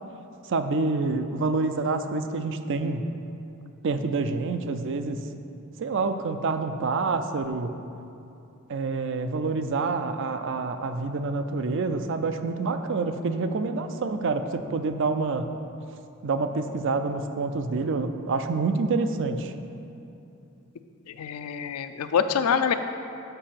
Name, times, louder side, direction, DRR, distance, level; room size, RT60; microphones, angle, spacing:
voice 1, 0.5-3.1 3.8-5.2 5.8-7.7 8.7-15.5 16.2-19.5, right 3 dB, 55° right, 9 dB, 0.4 m, -27 dB
voice 2, 21.1-22.7, left 7 dB, 80° left, 10 dB, 0.4 m, -25 dB
6.7 x 5.3 x 5.8 m, 2.7 s
head